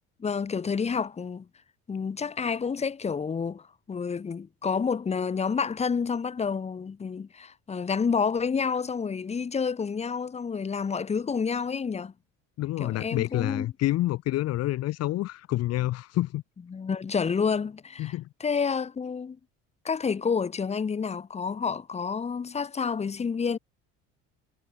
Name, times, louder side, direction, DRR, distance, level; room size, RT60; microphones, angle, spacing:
voice 1, 0.2-1.5 1.9-12.1 12.8-13.7 16.7-18.1 18.4-19.4 19.8-23.6, left 5 dB, 20° left, 3.1 m, -29 dB
voice 2, 12.6-16.4 18.0-18.3, left 15 dB, 55° left, 3.6 m, -28 dB
cardioid pair, 155°, 31 cm